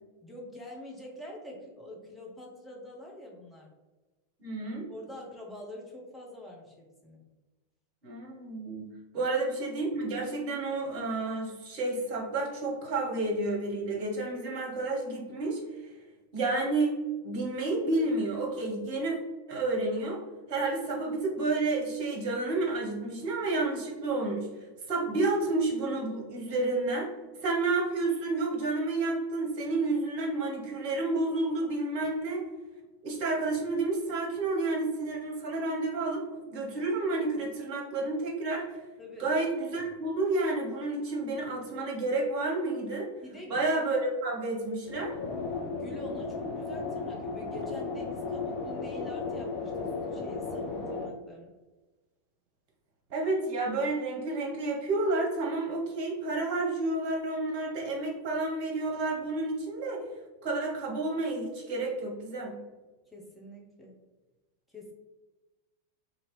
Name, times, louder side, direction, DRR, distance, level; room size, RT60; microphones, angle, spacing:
voice 1, 0.2-3.7 4.9-7.2 9.1-9.3 39.0-39.3 43.2-43.6 45.7-51.5 63.1-64.0 64.7-64.9, left 1 dB, 5° left, -2 dB, 0.8 m, -46 dB
voice 2, 4.4-4.9 8.0-15.6 16.3-19.2 19.5-20.2 20.5-24.5 24.9-27.1 27.4-32.4 33.0-38.8 39.2-43.1 43.5-45.2 53.1-60.0 60.4-62.6, right 2 dB, 45° right, 0 dB, 0.9 m, -30 dB
sound 1, 44.9-51.1, left 4 dB, 35° left, 0.6 m, -35 dB
2.8 x 2.6 x 3.0 m, 1.2 s
figure-of-eight pair, 90°, 0 cm